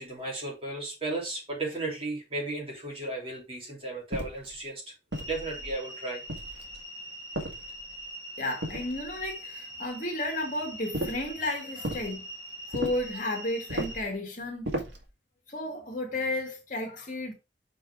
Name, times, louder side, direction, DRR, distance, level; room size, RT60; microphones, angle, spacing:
voice 1, 0.0-4.9 5.3-6.2, right 2 dB, 30° right, 3.0 m, -35 dB
sound 1, 4.1-4.5 5.1-5.8 6.3-6.8 7.3-8.0 8.6-9.3 10.9-11.3 11.8-12.1 12.7-13.1 13.7-14.1 14.6-15.1, right 1 dB, 85° right, 1.9 m, -35 dB
sound 2, 5.1-14.0, equal, 20° left, 2.0 m, -43 dB
voice 2, 8.4-12.3 12.7-14.7 15.5-17.3, left 1 dB, 45° left, 2.3 m, -33 dB
6.1 x 4.6 x 4.8 m
head